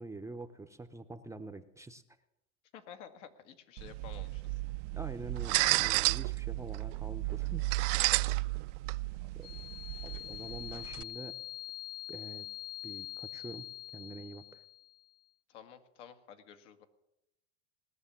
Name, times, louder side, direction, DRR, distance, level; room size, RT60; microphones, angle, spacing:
voice 1, 0.0-2.0 4.9-7.7 9.3-9.5 10.0-11.4 12.1-12.5 12.8-14.6, right 2 dB, 10° right, 7 dB, 0.5 m, -46 dB
voice 2, 2.7-4.6 9.2-9.3 15.5-16.9, left 8 dB, 80° left, 8 dB, 1.8 m, -52 dB
sound 1, 3.8-11.0, right 21 dB, 80° right, 0.5 m, -33 dB
sound 2, 9.4-15.1, left 16 dB, 50° left, 0.5 m, -44 dB
18.5 x 6.7 x 9.8 m, 0.88 s
supercardioid pair, 135°, 36 cm